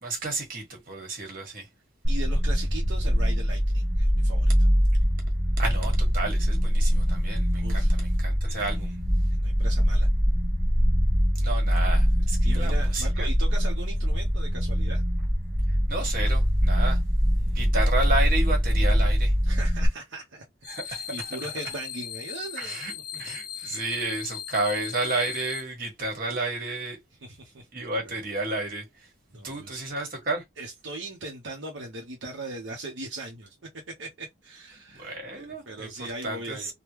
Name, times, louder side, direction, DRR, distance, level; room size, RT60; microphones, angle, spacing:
voice 1, 0.0-1.6 5.6-9.0 11.4-13.3 15.9-17.0 17.5-19.3 20.7-21.1 22.6-27.0 27.7-28.8 29.4-30.4 35.0-35.9 36.2-36.7, right 2 dB, 50° right, 1.5 m, -31 dB
sound 1, 2.0-19.9, equal, 5° left, 0.6 m, -23 dB
voice 2, 2.1-4.7 7.3-8.0 8.6-8.9 9.3-10.1 12.4-15.0 17.2-17.6 19.4-20.4 20.8-22.8 23.1-23.2 23.5-24.0 27.2-28.2 29.3-29.8 30.6-33.6 34.0-36.7, right 2 dB, 80° right, 0.8 m, -39 dB
sound 2, 20.6-25.6, left 9 dB, 50° left, 0.5 m, -38 dB
3.5 x 2.2 x 3.0 m
head